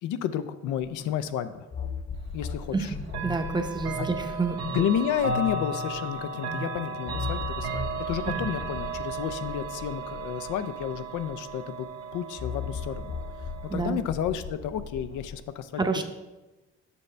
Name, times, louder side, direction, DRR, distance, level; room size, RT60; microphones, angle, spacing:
voice 1, 0.0-1.7 2.3-2.9 4.0-4.1 4.6-13.1 13.7-16.0, left 9 dB, 85° left, 11 dB, 0.5 m, -31 dB
sound 1, 0.8-0.9 1.7-6.2 7.1-11.7 12.4-15.4, left 6 dB, 25° left, 0.4 m, -38 dB
voice 2, 2.7-4.7 13.7-14.0 15.8-16.0, right 3 dB, 15° right, 5 dB, 0.7 m, -29 dB
Chime / Clock, 3.1-13.9, right 3 dB, 55° right, 1.0 m, -35 dB
6.9 x 6.3 x 3.2 m, 1.1 s
cardioid pair, 90°, 30 cm